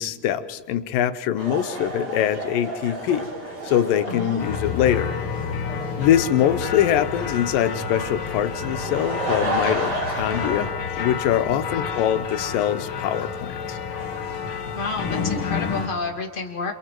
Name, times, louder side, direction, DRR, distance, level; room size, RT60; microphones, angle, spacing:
voice 1, 0.0-3.3 3.6-5.1 6.0-10.7 11.0-13.8, left 10 dB, 80° left, 11 dB, 2.5 m, -23 dB
sound 1, 1.4-10.7, right 1 dB, 50° right, 7.4 m, -32 dB
voice 2, 4.1-4.6 11.5-11.9 14.7-16.7, left 4 dB, 25° left, 2 dB, 1.1 m, -31 dB
sound 2, 4.4-15.9, left 6 dB, 55° left, 1.6 m, -29 dB
29.5 x 27.5 x 4.5 m, 1.5 s
omnidirectional pair, 3.9 m